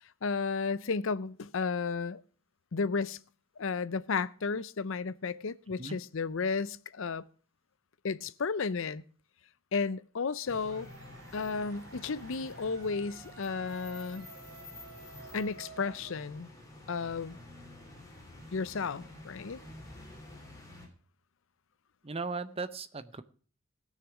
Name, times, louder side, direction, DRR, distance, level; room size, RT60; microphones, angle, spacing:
voice 1, 0.2-2.2 2.7-3.2 3.6-7.2 8.0-9.0 9.7-10.9 11.3-14.3 15.3-16.5 16.9-17.4 18.5-19.6, left 4 dB, 60° left, 0.5 m, -33 dB
sound 1, 10.4-20.9, left 2 dB, 15° left, 3.8 m, -50 dB
sound 2, 10.6-16.7, right 3 dB, 60° right, 3.3 m, -51 dB
voice 2, 22.0-23.2, right 4 dB, 25° right, 0.7 m, -37 dB
18.0 x 6.6 x 6.0 m
head